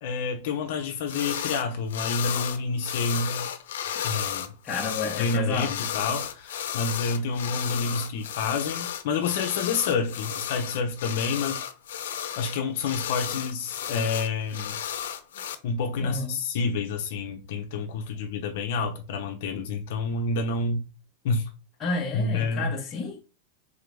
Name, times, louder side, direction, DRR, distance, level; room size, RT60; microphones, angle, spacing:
voice 1, 0.0-3.5 4.0-4.5 5.2-11.6 12.4-14.8 15.6-20.8 21.2-21.5 22.1-22.7, left 4 dB, 55° left, 0.8 m, -28 dB
sound 1, 1.1-1.6 1.9-15.6, left 9 dB, 85° left, 0.6 m, -33 dB
voice 2, 4.6-5.7 16.0-16.4 21.8-23.2, left 3 dB, 15° left, 1.0 m, -30 dB
3.8 x 3.8 x 3.4 m
supercardioid pair, 175°, 0 cm